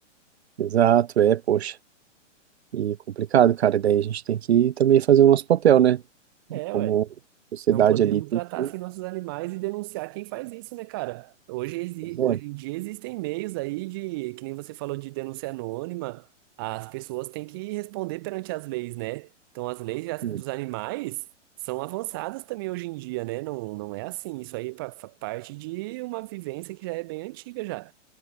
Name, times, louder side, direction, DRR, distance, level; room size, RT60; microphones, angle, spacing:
voice 1, 0.6-1.7 2.7-6.0 6.5-7.0 7.5-8.7 12.2-12.4 20.2-20.4, right 10 dB, 55° right, 1.3 m, -20 dB
voice 2, 6.5-7.0 7.7-16.3 16.6-19.3 19.5-21.2 21.6-27.9, right 22 dB, 20° right, 0.9 m, -33 dB
hypercardioid pair, 175°, 37 cm